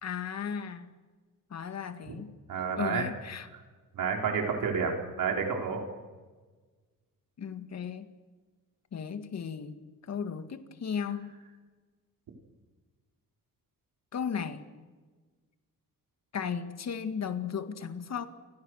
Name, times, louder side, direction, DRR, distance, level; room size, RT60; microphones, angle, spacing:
voice 1, 0.0-0.9 1.5-2.3 2.7-3.5 7.4-8.1 8.9-9.8 10.1-11.3 14.1-14.7 16.3-18.3, left 7 dB, 50° left, 9 dB, 2.0 m, -35 dB
voice 2, 2.5-3.0 3.9-5.8, right 6 dB, 80° right, 2 dB, 4.8 m, -30 dB
29.0 x 25.0 x 6.5 m, 1.4 s
cardioid pair, 135°, 33 cm